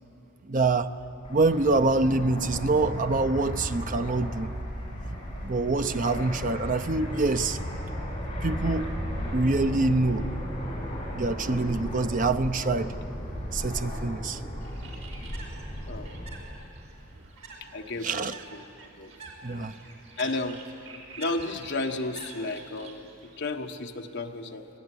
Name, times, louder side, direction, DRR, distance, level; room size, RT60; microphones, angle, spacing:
voice 1, 0.5-0.9 1.3-4.5 5.4-7.6 8.4-8.9 9.3-10.3 11.1-12.9 13.5-14.4 18.0-18.3 19.4-19.8, right 3 dB, 40° right, 10 dB, 0.7 m, -25 dB
Fixed-wing aircraft airplane, 1.2-16.3, equal, 25° left, 6.8 m, -35 dB
Bird, 14.6-23.5, right 3 dB, 70° right, 4.4 m, -47 dB
voice 2, 17.7-18.6 19.0-19.1 19.4-19.7 20.2-20.6 21.2-24.8, left 2 dB, 55° left, 4 dB, 1.3 m, -33 dB
24.0 x 16.5 x 9.8 m, 2.8 s
head